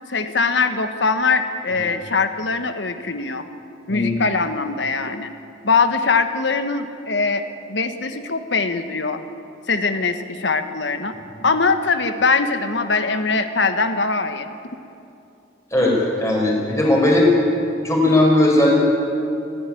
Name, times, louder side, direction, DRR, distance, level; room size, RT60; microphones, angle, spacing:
voice 1, 0.1-3.4 3.9-5.3 5.6-9.2 9.7-11.1 11.4-14.5, left 4 dB, 80° left, 9 dB, 1.4 m, -22 dB
voice 2, 15.7-17.4 17.8-18.7, left 1 dB, 15° left, -2 dB, 4.9 m, -17 dB
28.0 x 10.5 x 10.0 m, 2.7 s
head